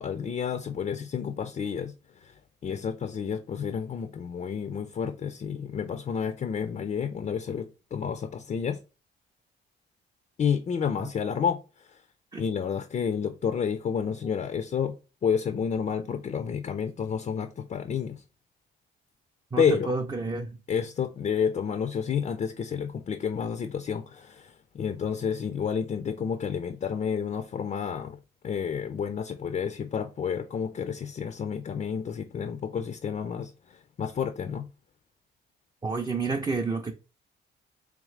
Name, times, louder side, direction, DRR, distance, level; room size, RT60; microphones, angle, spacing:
voice 1, 0.0-8.8 10.4-12.0 12.4-15.0 15.2-18.2 19.6-19.9 20.7-28.2 28.4-34.7, left 7 dB, 35° left, 0.4 m, -30 dB
voice 2, 19.5-20.5 35.8-36.9, right 3 dB, 20° right, 0.5 m, -29 dB
3.7 x 3.1 x 3.2 m
cardioid pair, 90°, 20 cm